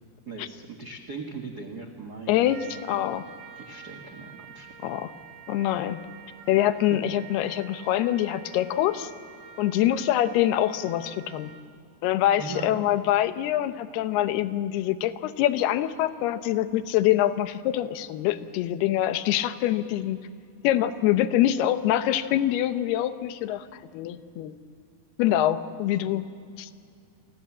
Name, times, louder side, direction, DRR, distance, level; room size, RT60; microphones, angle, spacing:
voice 1, 0.3-3.1 3.5-4.7 6.9-7.0 12.4-12.9, right 4 dB, 90° right, 5 dB, 0.8 m, -39 dB
voice 2, 2.3-3.2 4.8-5.1 5.5-6.0 6.5-9.1 9.6-11.5 12.0-20.2 20.6-24.6 25.2-26.3 26.6-26.7, left 12 dB, 85° left, 11 dB, 2.9 m, -25 dB
Trumpet, 2.4-11.8, right 7 dB, 65° right, 2.9 m, -47 dB
29.5 x 23.5 x 7.4 m, 2.4 s
omnidirectional pair, 4.5 m